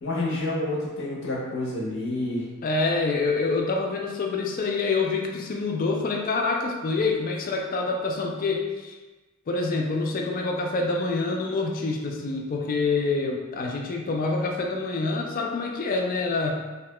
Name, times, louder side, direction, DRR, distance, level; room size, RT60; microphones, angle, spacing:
voice 1, 0.0-2.4, left 2 dB, 60° left, -5 dB, 0.7 m, -28 dB
voice 2, 2.6-8.9 9.5-16.6, left 3 dB, 40° left, 1 dB, 0.3 m, -26 dB
2.8 x 2.1 x 3.0 m, 1.2 s
head